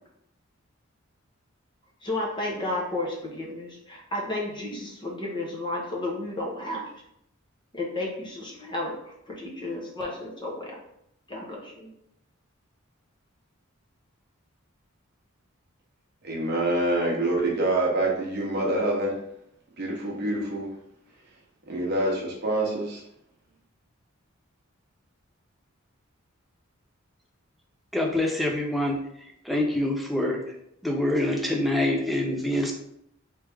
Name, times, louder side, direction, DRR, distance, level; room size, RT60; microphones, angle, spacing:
voice 1, 2.0-6.8 7.7-10.8 11.3-11.9, left 2 dB, 20° left, -2 dB, 0.9 m, -32 dB
voice 2, 16.2-19.1 19.8-20.7 21.7-23.0, right 1 dB, 50° right, -2 dB, 0.9 m, -26 dB
voice 3, 27.9-29.0 29.4-30.4 30.8-32.7, left 1 dB, ahead, 0 dB, 0.5 m, -25 dB
3.4 x 3.2 x 3.4 m, 0.76 s
head